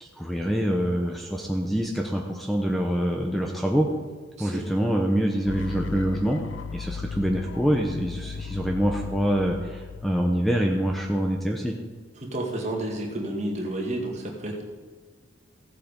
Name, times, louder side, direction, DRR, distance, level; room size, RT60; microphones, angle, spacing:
voice 1, 0.0-3.9 4.4-6.4 6.7-11.7, equal, ahead, 1 dB, 0.8 m, -25 dB
voice 2, 4.4-4.7 12.2-14.6, right 1 dB, 35° right, 0 dB, 2.0 m, -31 dB
sound 1, 5.5-11.4, left 6 dB, 80° left, 0.5 m, -37 dB
15.5 x 7.5 x 5.3 m, 1.5 s
head